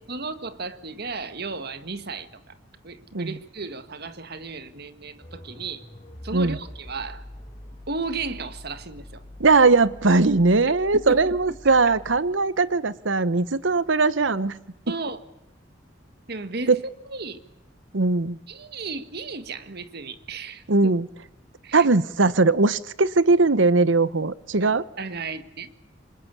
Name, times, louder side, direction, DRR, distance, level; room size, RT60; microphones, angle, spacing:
voice 1, 0.1-2.3 2.8-5.8 6.2-7.2 7.9-9.2 10.9-11.2 11.8-11.9 14.9-15.2 16.3-16.8 17.0-17.4 18.5-20.6 21.6-21.9 24.6-25.7, right 3 dB, 60° right, 1.7 m, -34 dB
sound 1, 5.2-12.2, left 1 dB, 30° left, 6.0 m, -44 dB
voice 2, 9.4-14.6 16.7-16.8 17.9-18.4 20.7-21.1 21.7-24.8, right 3 dB, 85° right, 1.0 m, -20 dB
27.5 x 25.5 x 8.4 m
head